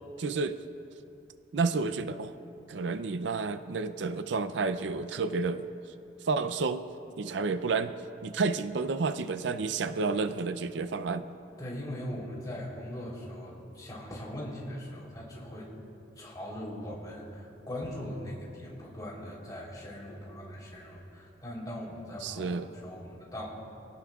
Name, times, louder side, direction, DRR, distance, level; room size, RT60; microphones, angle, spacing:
voice 1, 0.2-0.6 1.5-2.3 2.7-5.7 6.2-6.9 7.2-7.9 8.2-11.3 22.2-22.7, right 4 dB, 70° right, 12 dB, 0.5 m, -30 dB
voice 2, 11.6-15.7 16.2-23.5, left 1 dB, 20° left, -4 dB, 3.5 m, -40 dB
24.0 x 17.5 x 2.4 m, 2.7 s
head